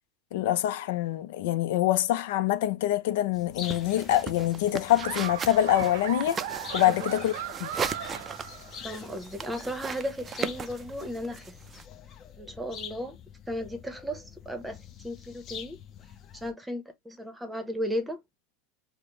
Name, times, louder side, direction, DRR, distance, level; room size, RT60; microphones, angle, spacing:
voice 1, 0.3-6.4 6.7-7.3 7.6-7.7, left 13 dB, 75° left, 0.5 m, -25 dB
sound 1, 3.3-16.5, left 8 dB, 35° left, 0.8 m, -46 dB
sound 2, 3.6-11.8, right 6 dB, 25° right, 0.4 m, -38 dB
Laughter, 5.0-9.0, right 10 dB, 75° right, 0.6 m, -37 dB
voice 2, 8.8-11.5 12.4-13.2 13.5-15.8 16.3-18.2, equal, 5° right, 0.9 m, -35 dB
5.0 x 2.1 x 3.1 m
supercardioid pair, 125°, 0 cm